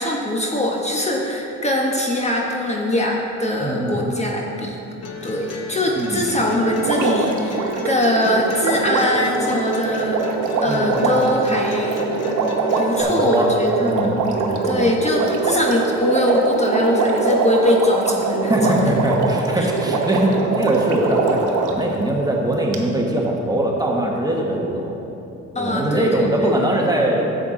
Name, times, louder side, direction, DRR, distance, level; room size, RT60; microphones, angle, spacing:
voice 1, 0.0-4.8 5.2-10.2 10.6-12.0 12.8-14.2 14.6-18.8 19.9-20.0 25.5-26.5, left 1 dB, 20° left, -1 dB, 1.1 m, -22 dB
voice 2, 3.6-4.0 5.9-6.3 10.7-11.1 13.0-13.5 13.8-14.9 18.5-24.9 25.6-27.3, right 1 dB, 10° right, -1 dB, 1.3 m, -21 dB
sound 1, 5.0-13.0, left 2 dB, 55° left, 1.1 m, -33 dB
Water, 6.8-21.8 22.7-22.8, right 4 dB, 85° right, 1.0 m, -23 dB
10.5 x 7.5 x 3.8 m, 2.9 s
cardioid pair, 90°, 30 cm